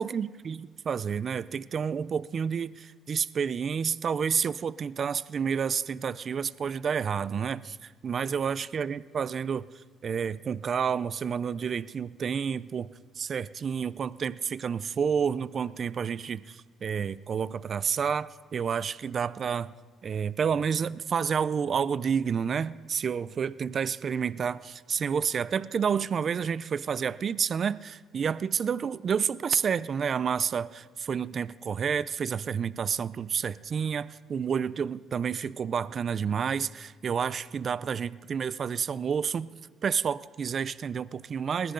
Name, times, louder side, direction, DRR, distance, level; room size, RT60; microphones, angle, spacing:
voice 1, 0.0-9.7 10.0-19.7 20.0-39.5 39.8-41.7, right 7 dB, 40° right, 18 dB, 0.5 m, -30 dB
20.0 x 16.5 x 3.9 m, 1.5 s
cardioid pair, 110°, 0 cm